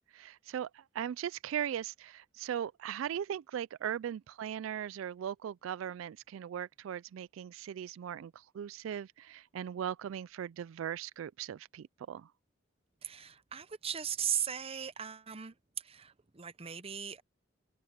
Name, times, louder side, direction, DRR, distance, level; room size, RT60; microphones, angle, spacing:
voice 1, 0.1-12.3, right 9 dB, 90° right, 0.3 m, -39 dB
voice 2, 13.0-17.2, right 9 dB, 30° right, 0.7 m, -38 dB
head